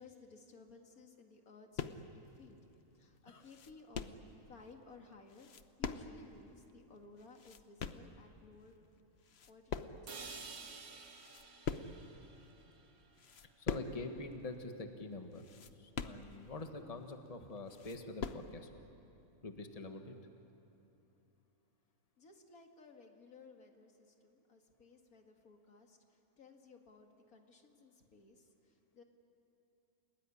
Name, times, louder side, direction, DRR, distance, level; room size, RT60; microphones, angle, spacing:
voice 1, 0.0-2.6 2.9-4.2 4.5-5.5 5.8-8.8 9.5-11.3 22.2-29.0, left 3 dB, 85° left, 3 dB, 2.4 m, -58 dB
sound 1, 1.8-2.2 2.7-2.8 3.2-4.3 5.3-6.3 6.6-6.7 7.2-8.1 8.7-9.0 9.2-10.3 10.6-10.7 11.1-12.1 12.6-12.8 13.2-14.1 14.3-14.4 14.8-14.9 15.3-16.6 17.1-17.2 17.5-18.5, left 6 dB, 50° left, 1.1 m, -43 dB
sound 2, 10.1-14.1, right 4 dB, 90° right, 2.1 m, -52 dB
voice 2, 13.6-15.4 15.8-18.7 19.4-20.1, left 3 dB, 25° left, 5 dB, 1.5 m, -45 dB
29.5 x 19.0 x 9.9 m, 2.8 s
omnidirectional pair, 1.5 m